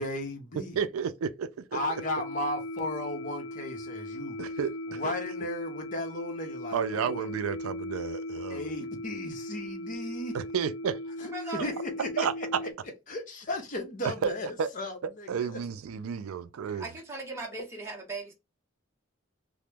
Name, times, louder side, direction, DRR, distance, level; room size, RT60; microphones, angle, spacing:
voice 1, 0.0-0.8 1.7-4.4 4.9-7.3 8.5-10.4 11.2-12.5 13.1-15.6 16.7-16.8, left 1 dB, 40° left, 0.7 m, -35 dB
voice 2, 0.8-1.8 4.4-5.1 6.7-8.6 10.3-11.0 12.2-12.6 14.0-14.3 14.6-14.7 15.3-16.9, right 7 dB, 90° right, 0.4 m, -31 dB
sound 1, 1.7-12.7, left 1 dB, 70° left, 0.4 m, -38 dB
voice 3, 11.2-11.7 16.8-18.3, right 3 dB, 10° right, 0.8 m, -38 dB
2.9 x 2.0 x 3.3 m
head